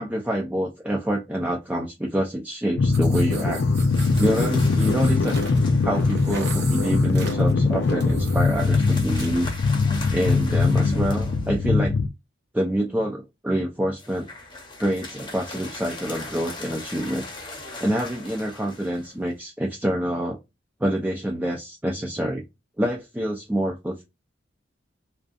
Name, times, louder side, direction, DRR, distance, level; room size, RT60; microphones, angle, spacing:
voice 1, 0.0-3.6 4.2-5.4 5.8-9.5 10.1-12.0 12.5-14.2 14.8-17.3 17.8-20.4 20.8-22.5 22.8-24.0, right 1 dB, 10° right, -1 dB, 0.4 m, -26 dB
sound 1, 2.8-12.1, left 3 dB, 80° left, 0.4 m, -21 dB
sound 2, 2.9-9.5, right 5 dB, 60° right, 1.0 m, -40 dB
sound 3, 3.9-6.5 8.5-11.8 14.0-19.3, left 2 dB, 25° left, 0.7 m, -40 dB
2.5 x 2.3 x 2.4 m, 0.22 s
head